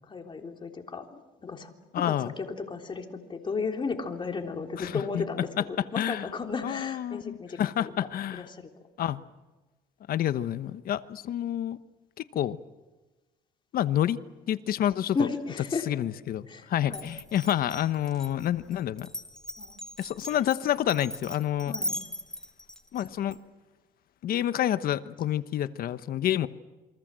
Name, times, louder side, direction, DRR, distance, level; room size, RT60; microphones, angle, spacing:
voice 1, 0.1-8.7 15.1-15.9 16.5-17.1 19.6-19.8 21.7-22.0, left 4 dB, 30° left, 3 dB, 3.6 m, -35 dB
voice 2, 1.9-2.3 4.8-5.2 6.0-6.3 6.6-8.4 9.0-9.2 10.1-11.8 12.2-12.6 13.7-14.2 14.5-15.3 15.9-19.1 20.0-21.7 22.9-23.4 24.2-26.5, left 11 dB, 60° left, 13 dB, 1.1 m, -28 dB
Glass, 16.9-23.4, left 1 dB, 5° left, 2.3 m, -39 dB
28.5 x 23.5 x 7.6 m, 1.2 s
cardioid pair, 110°, 17 cm